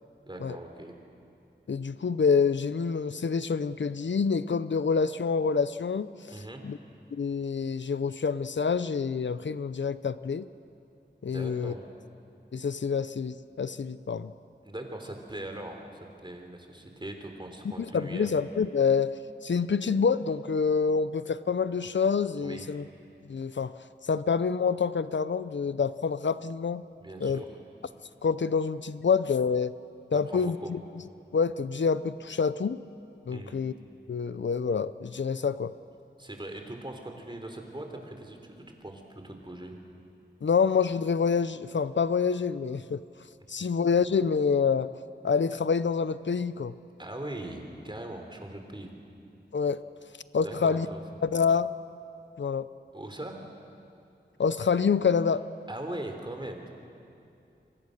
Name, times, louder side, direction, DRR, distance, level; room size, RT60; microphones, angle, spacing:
voice 1, 0.3-1.0 6.3-6.6 11.2-11.8 14.6-18.3 22.4-22.7 27.0-27.5 30.1-30.7 33.3-33.6 36.2-38.6 38.8-39.8 47.0-48.9 50.4-51.0 52.9-53.4 55.7-56.7, right 1 dB, 25° right, 3 dB, 3.5 m, -40 dB
voice 2, 1.7-6.1 6.6-6.8 7.1-10.5 11.2-11.7 12.5-14.3 17.6-22.8 23.3-23.8 24.0-26.8 27.2-27.4 28.2-29.8 30.1-30.8 31.3-32.8 33.3-33.7 34.1-35.7 40.4-43.0 43.5-44.9 45.2-46.7 49.5-49.8 50.3-50.9 51.2-51.7 52.4-52.7 54.4-55.5, left 5 dB, 75° left, 14 dB, 0.6 m, -27 dB
26.5 x 24.0 x 6.6 m, 2.6 s
wide cardioid pair, 70°, 19 cm